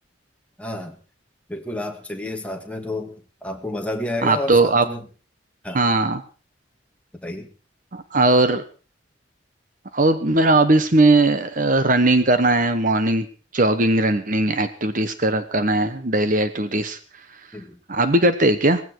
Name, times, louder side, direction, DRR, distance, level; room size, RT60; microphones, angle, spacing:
voice 1, 0.6-1.0 1.5-3.1 3.4-5.1 5.6-5.8 7.1-7.5 17.5-17.8, left 1 dB, 5° left, 3 dB, 2.2 m, -30 dB
voice 2, 4.2-4.8 5.7-6.2 7.9-8.6 9.9-13.3 13.5-17.0 17.9-18.8, right 2 dB, 45° right, 11 dB, 1.1 m, -19 dB
19.0 x 16.0 x 4.7 m, 0.36 s
head